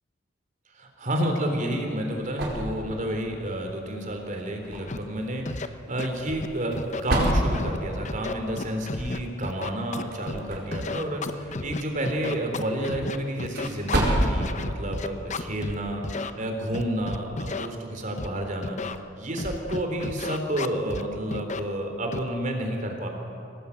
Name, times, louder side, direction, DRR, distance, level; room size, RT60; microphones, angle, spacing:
voice 1, 0.7-23.1, right 1 dB, 40° right, 3 dB, 3.6 m, -30 dB
sound 1, 1.5-16.0, right 1 dB, 60° right, 4.5 m, -33 dB
Scratching (performance technique), 4.9-5.0 5.4-5.7 6.0-6.5 6.8-7.8 8.0-10.4 10.7-15.7 16.0-16.3 16.7-17.7 18.2-18.3 18.6-19.0 19.4-21.0 21.3-21.6 22.1-22.3, left 3 dB, 40° left, 0.8 m, -32 dB
24.5 x 18.0 x 8.6 m, 2.8 s
head